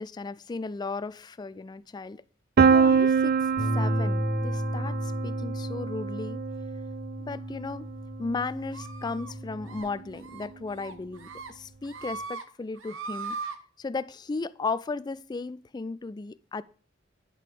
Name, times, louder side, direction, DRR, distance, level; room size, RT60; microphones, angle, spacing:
voice 1, 0.0-2.2 2.7-6.4 7.2-7.9 8.2-13.4 13.8-16.6, left 3 dB, 20° left, 0.3 m, -35 dB
Piano, 2.6-8.3, right 6 dB, 50° right, 0.5 m, -26 dB
Bass guitar, 3.6-9.8, equal, 55° left, 1.4 m, -33 dB
sound 1, 8.7-9.3 9.7-9.9 10.2-10.5 10.8-11.5 11.8-12.4 12.8-13.6, right 4 dB, 85° right, 0.9 m, -38 dB
10.0 x 6.6 x 3.7 m
head